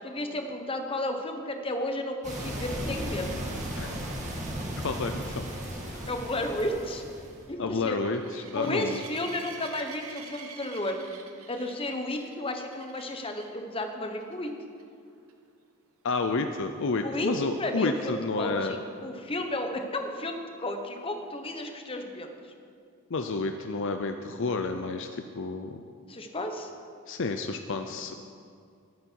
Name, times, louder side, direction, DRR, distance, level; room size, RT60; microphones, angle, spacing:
voice 1, 0.0-3.4 6.1-7.0 7.5-8.0 8.5-11.0 11.5-14.5 17.0-17.3 17.6-18.8 19.0-22.3 26.1-26.7, left 1 dB, 25° left, 5 dB, 1.1 m, -33 dB
sound 1, 2.2-7.5, right 1 dB, 30° right, 2.2 m, -35 dB
voice 2, 4.8-5.5 5.9-6.1 7.6-9.1 16.0-18.8 23.1-25.8 27.1-28.1, left 3 dB, 55° left, 7 dB, 0.6 m, -30 dB
sound 2, 5.8-13.6 14.2-14.5 14.8-14.9 15.3-15.4 19.0-19.1, right 6 dB, 70° right, 1.4 m, -47 dB
20.0 x 9.3 x 4.7 m, 2.4 s
head